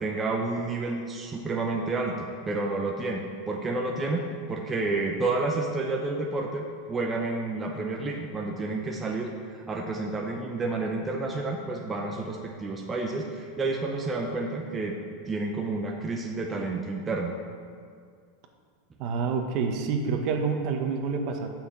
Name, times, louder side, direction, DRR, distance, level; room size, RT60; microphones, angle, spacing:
voice 1, 0.0-9.3 9.7-14.9 15.3-17.3, right 3 dB, 15° right, 1 dB, 0.7 m, -30 dB
voice 2, 19.0-21.5, right 5 dB, 50° right, 4 dB, 1.0 m, -28 dB
6.4 x 5.8 x 7.2 m, 2.1 s
supercardioid pair, 140°, 0 cm